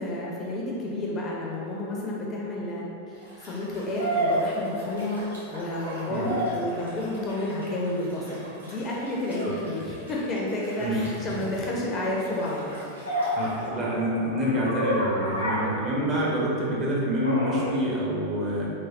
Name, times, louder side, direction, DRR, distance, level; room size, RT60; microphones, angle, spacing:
voice 1, 0.0-13.2, left 1 dB, 25° left, -4 dB, 0.4 m, -31 dB
sound 1, 1.6-1.7 3.9-5.3 5.6-6.7 9.3-9.6 13.1-16.5 17.2-17.8, equal, 80° left, 0.6 m, -30 dB
Liquid, 3.1-13.7, right 1 dB, 80° right, 0.8 m, -48 dB
Hammer, 4.1-8.8 9.6-9.7, equal, 55° right, 1.2 m, -47 dB
voice 2, 10.8-11.3 13.4-18.7, equal, 30° right, -5 dB, 0.6 m, -27 dB
3.1 x 2.2 x 2.4 m, 2.6 s
figure-of-eight pair, 90°, 0 cm